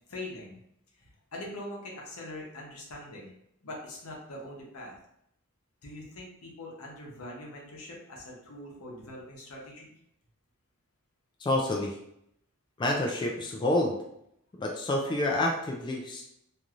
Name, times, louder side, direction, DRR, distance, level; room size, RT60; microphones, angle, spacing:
voice 1, 0.1-0.6 1.3-3.3 3.6-4.9 5.8-9.9, left 1 dB, 75° left, -2 dB, 0.8 m, -42 dB
voice 2, 11.4-12.0 12.8-14.0 14.6-16.2, left 1 dB, 20° left, 0 dB, 0.3 m, -28 dB
3.0 x 2.6 x 2.4 m, 0.76 s
head